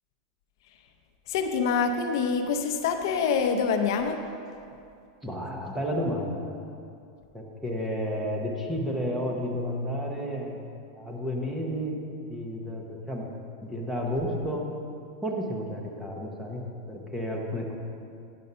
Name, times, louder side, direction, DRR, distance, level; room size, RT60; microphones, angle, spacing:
voice 1, 1.3-4.2, left 5 dB, 55° left, 6 dB, 0.6 m, -26 dB
voice 2, 5.2-6.6 7.3-10.6 10.9-12.0 12.3-13.3 13.6-14.6 15.2-17.8, equal, 5° right, -1 dB, 0.8 m, -31 dB
9.4 x 5.4 x 5.5 m, 2.5 s
supercardioid pair, 170°, 2 cm